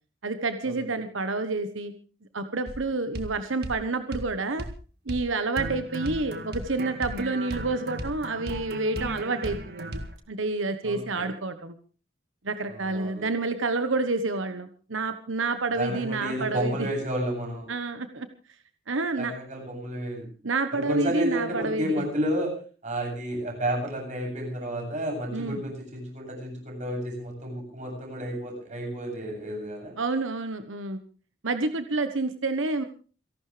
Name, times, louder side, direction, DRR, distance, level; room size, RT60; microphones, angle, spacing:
voice 1, 0.2-1.9 2.3-4.7 5.1-10.0 10.3-11.7 12.4-16.9 17.7-18.3 18.9-19.3 20.4-22.1 25.3-25.6 30.0-31.0 31.4-32.8, right 3 dB, 90° right, 9 dB, 1.2 m, -29 dB
sound 1, 2.7-2.8 3.1-3.3 3.6-3.8 4.1-4.3 4.6-4.8 5.1-5.3 5.6-10.2, right 1 dB, 55° right, 1.9 m, -36 dB
voice 2, 10.8-11.3 12.7-13.2 15.8-17.7 19.2-20.3 20.7-22.5 22.8-29.9, right 1 dB, 40° right, 1 dB, 7.9 m, -31 dB
28.5 x 12.0 x 3.4 m, 0.38 s
head